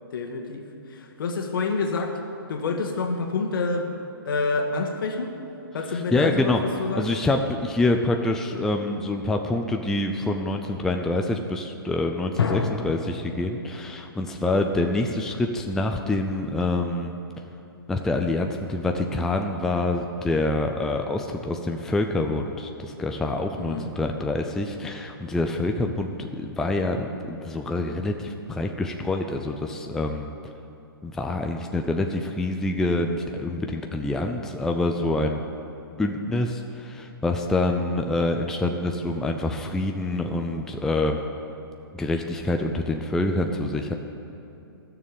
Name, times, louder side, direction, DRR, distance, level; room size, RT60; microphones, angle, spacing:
voice 1, 0.1-0.6 0.9-2.2 2.5-3.9 4.2-5.3 5.7-7.1 23.6-23.9, left 4 dB, 65° left, 4 dB, 1.6 m, -27 dB
voice 2, 5.9-6.6 6.9-17.1 17.9-30.3 31.0-35.4 36.0-41.2 41.9-43.9, left 2 dB, 5° left, 3 dB, 0.4 m, -26 dB
sound 1, 12.4-15.8, left 5 dB, 80° left, 1.3 m, -31 dB
12.5 x 6.8 x 9.3 m, 2.8 s
hypercardioid pair, 145°, 12 cm